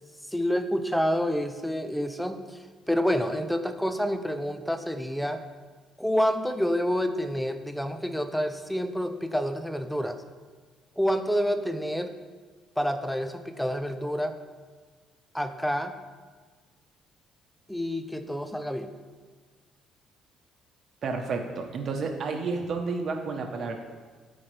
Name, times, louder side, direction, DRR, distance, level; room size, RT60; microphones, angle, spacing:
voice 1, 0.3-2.6 2.9-5.4 6.0-10.2 11.0-12.2 12.8-14.4 15.3-16.0 17.7-18.9, equal, ahead, 8 dB, 0.5 m, -28 dB
voice 2, 21.0-23.8, right 4 dB, 45° right, 3 dB, 1.0 m, -31 dB
13.0 x 4.3 x 3.4 m, 1.5 s
cardioid pair, 125°, 0 cm